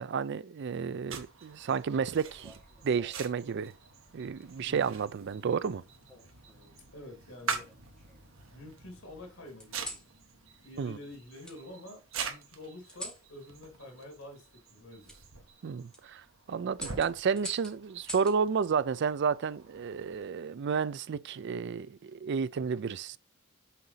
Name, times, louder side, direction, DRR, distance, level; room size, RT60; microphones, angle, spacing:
voice 1, 0.0-2.5 2.8-3.7 4.1-5.8 10.8-11.0 15.6-16.2 16.5-23.2, right 6 dB, 55° right, 0.4 m, -31 dB
sound 1, 1.1-20.2, right 5 dB, 75° right, 1.3 m, -45 dB
sound 2, 2.2-3.4 4.4-4.8 6.1-6.8 7.5-8.4 9.6-10.1 11.4-11.6 12.9-13.3 15.0-15.2 15.7-16.0 16.7-18.4 19.9-20.3, left 1 dB, 5° left, 2.4 m, -46 dB
voice 2, 4.6-5.0 6.9-7.7 8.5-10.0 10.6-15.1, left 1 dB, 90° left, 3.0 m, -48 dB
6.6 x 4.0 x 5.6 m
head